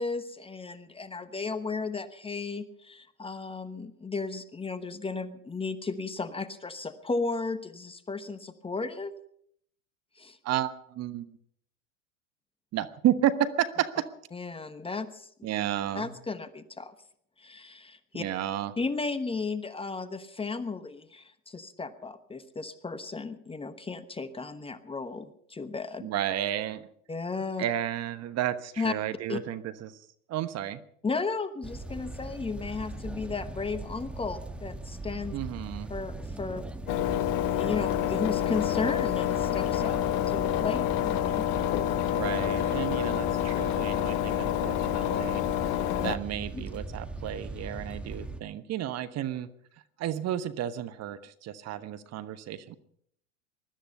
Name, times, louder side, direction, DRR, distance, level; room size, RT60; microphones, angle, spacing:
voice 1, 0.0-9.1 10.2-10.4 14.3-15.3 15.9-16.9 17.4-18.2 18.8-26.0 27.1-27.6 28.8-28.9 29.3-29.4 31.0-35.4 35.9-36.6 37.5-41.4 45.8-46.1 46.5-46.7, left 4 dB, 15° left, 12 dB, 1.1 m, -34 dB
voice 2, 10.4-11.4 12.7-14.1 15.4-16.1 18.1-18.7 26.0-26.9 27.6-30.0 30.3-30.8 35.3-35.9 42.1-45.4 46.0-49.5 50.0-52.8, right 11 dB, 40° right, 12 dB, 1.2 m, -32 dB
sound 1, 31.6-48.4, right 2 dB, 5° right, 1.3 m, -39 dB
Engine, 36.9-46.2, left 12 dB, 55° left, 1.0 m, -28 dB
20.5 x 13.0 x 5.5 m, 0.66 s
hypercardioid pair, 95°, 41 cm